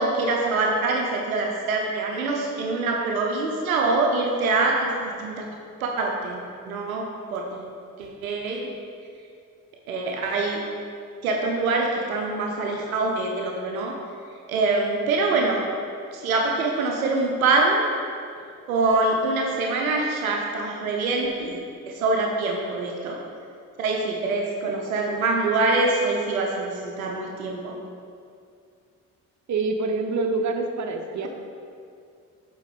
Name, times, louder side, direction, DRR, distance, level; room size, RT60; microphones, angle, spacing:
voice 1, 0.0-5.5 5.8-7.7 8.0-8.7 9.9-10.6 11.2-13.9 14.5-15.6 16.1-17.8 18.7-21.6 21.9-23.2 23.8-27.7, right 3 dB, 90° right, 0 dB, 0.6 m, -24 dB
voice 2, 29.5-31.3, right 3 dB, 45° right, 4 dB, 0.9 m, -26 dB
8.2 x 3.8 x 5.2 m, 2.3 s
hypercardioid pair, 40°, 40 cm